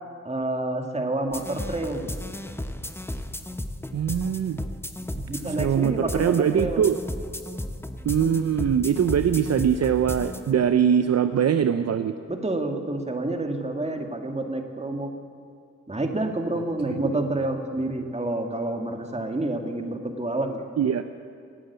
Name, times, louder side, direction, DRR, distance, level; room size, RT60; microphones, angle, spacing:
voice 1, 0.2-2.1 5.3-6.8 12.3-15.1 15.9-20.6, right 2 dB, 20° right, 4 dB, 2.1 m, -28 dB
sound 1, 1.3-10.5, left 1 dB, 10° left, 1.0 m, -34 dB
voice 2, 3.9-4.7 5.1-7.0 8.0-12.1 17.0-17.2 20.8-21.0, right 8 dB, 60° right, 10 dB, 0.6 m, -22 dB
17.5 x 8.7 x 8.2 m, 2.2 s
cardioid pair, 45°, 30 cm